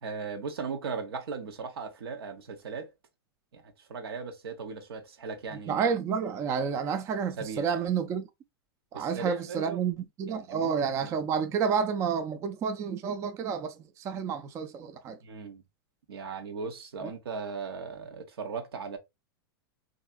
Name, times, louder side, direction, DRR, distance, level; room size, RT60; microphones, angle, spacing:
voice 1, 0.0-2.9 3.5-5.8 7.4-7.7 8.9-9.8 10.4-11.1 15.2-15.6 16.1-19.0, right 5 dB, 80° right, 0.9 m, -38 dB
voice 2, 5.7-8.3 8.9-15.2 17.0-17.1, right 6 dB, 25° right, 0.3 m, -30 dB
3.3 x 2.5 x 2.3 m
hypercardioid pair, 125°, 12 cm